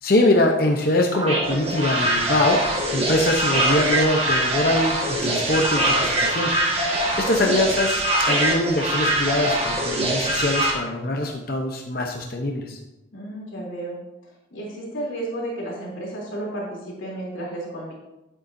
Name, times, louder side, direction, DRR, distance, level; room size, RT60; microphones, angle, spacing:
voice 1, 0.0-6.5 7.2-8.0 8.3-12.8, left 1 dB, 50° left, 1 dB, 0.8 m, -23 dB
sound 1, 1.1-10.7, right 1 dB, 30° right, 1.5 m, -23 dB
voice 2, 7.2-7.5 13.1-14.0 14.5-17.9, right 1 dB, 85° left, -4 dB, 3.2 m, -32 dB
10.5 x 8.4 x 2.7 m, 0.97 s
head